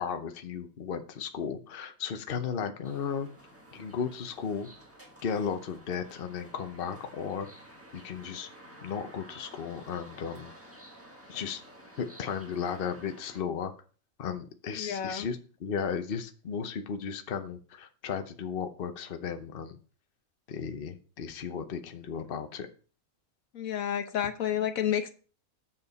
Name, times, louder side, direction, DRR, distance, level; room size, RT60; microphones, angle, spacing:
voice 1, 0.0-3.3 3.7-4.7 5.2-7.5 7.9-8.5 8.8-10.5 11.3-11.6 12.0-13.7 14.2-19.8 20.5-22.7, left 7 dB, 45° left, 7 dB, 1.0 m, -35 dB
sound 1, 2.8-13.4, equal, 10° right, 1.5 m, -52 dB
voice 2, 14.8-15.3 23.5-25.1, left 9 dB, 85° left, 8 dB, 1.4 m, -30 dB
8.0 x 7.2 x 4.1 m, 0.38 s
omnidirectional pair, 1.4 m